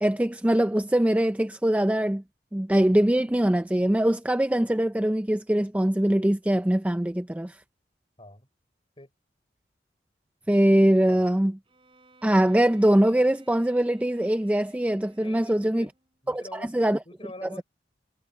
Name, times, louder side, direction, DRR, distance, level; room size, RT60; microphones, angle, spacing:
voice 1, 0.0-2.2 2.5-7.5 10.5-11.5 12.2-15.9 16.3-17.0, right 1 dB, 10° right, 0.4 m, -22 dB
voice 2, 8.2-8.5 9.0-9.1 11.1-11.3 15.1-15.9 16.2-17.6, left 1 dB, 30° left, 4.7 m, -45 dB
Bowed string instrument, 11.7-16.1, right 2 dB, 30° right, 7.9 m, -58 dB
head